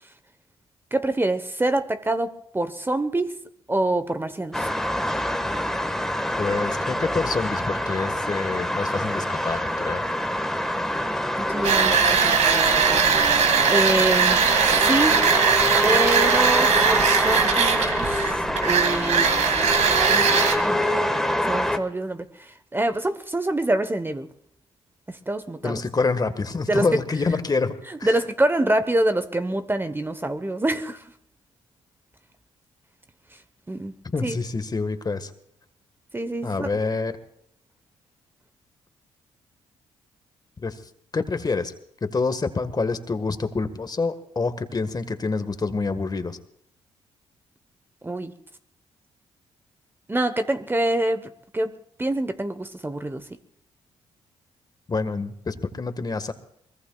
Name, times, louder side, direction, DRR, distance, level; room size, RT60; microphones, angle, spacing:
voice 1, 0.9-3.4 3.7-4.7 11.4-12.0 12.2-13.1 13.6-15.2 15.8-18.1 18.6-19.3 20.1-20.8 21.4-24.3 25.1-25.8 26.7-26.9 28.0-31.0 33.7-33.9 34.2-34.4 36.1-36.7 48.0-48.3 50.1-51.7 52.0-53.2, right 1 dB, 20° right, 1.0 m, -26 dB
sound 1, 4.5-21.8, left 1 dB, 5° left, 1.5 m, -26 dB
voice 2, 6.4-10.0 25.6-28.1 34.1-35.3 36.4-37.1 40.6-40.8 41.1-41.7 42.0-46.4 54.9-56.3, left 4 dB, 35° left, 1.6 m, -27 dB
sound 2, 11.6-20.5, right 7 dB, 70° right, 1.9 m, -20 dB
23.5 x 21.0 x 2.4 m
supercardioid pair, 55°, 12 cm